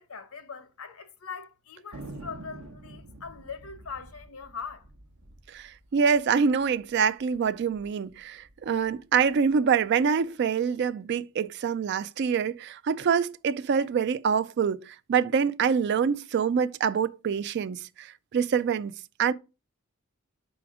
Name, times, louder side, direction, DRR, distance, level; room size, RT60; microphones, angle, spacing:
voice 1, 0.0-4.9, left 5 dB, 85° left, 0.9 m, -41 dB
Thunder, 1.9-6.8 7.0-7.1 7.3-7.9 8.4-9.5, right 2 dB, 80° right, 0.9 m, -47 dB
voice 2, 5.5-18.9 19.2-19.3, right 6 dB, 50° right, 0.3 m, -25 dB
5.1 x 4.9 x 4.8 m
head